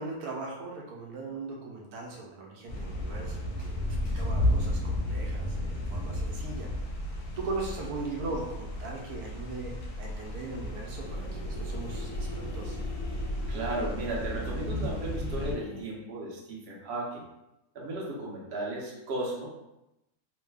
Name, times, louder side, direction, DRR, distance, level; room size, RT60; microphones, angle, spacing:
voice 1, 0.0-3.8 4.1-6.7 7.4-12.8, right 3 dB, 80° right, -1 dB, 1.1 m, -39 dB
sound 1, 2.7-15.5, left 1 dB, 90° left, 1.2 m, -33 dB
sound 2, 3.6-4.5 10.4-15.8, left 1 dB, 30° left, 0.7 m, -44 dB
voice 2, 13.5-17.3 17.7-19.5, right 2 dB, 50° right, -3 dB, 0.8 m, -35 dB
3.1 x 2.1 x 3.3 m, 0.91 s
omnidirectional pair, 1.6 m